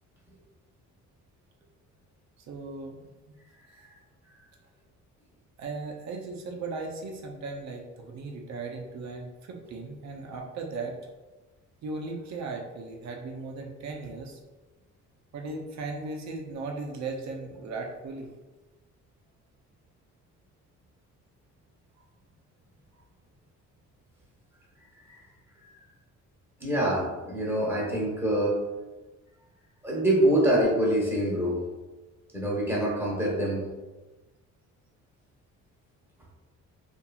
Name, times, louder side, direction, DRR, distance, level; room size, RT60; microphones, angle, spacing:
voice 1, 2.4-3.0 3.3-3.4 5.6-10.9 11.8-14.4 15.3-18.3, right 3 dB, 65° right, 1 dB, 0.6 m, -37 dB
voice 2, 26.6-28.6 29.8-31.6 32.3-33.6, right 1 dB, 5° right, -5 dB, 1.1 m, -25 dB
2.8 x 2.6 x 2.3 m, 1.2 s
cardioid pair, 90°, 30 cm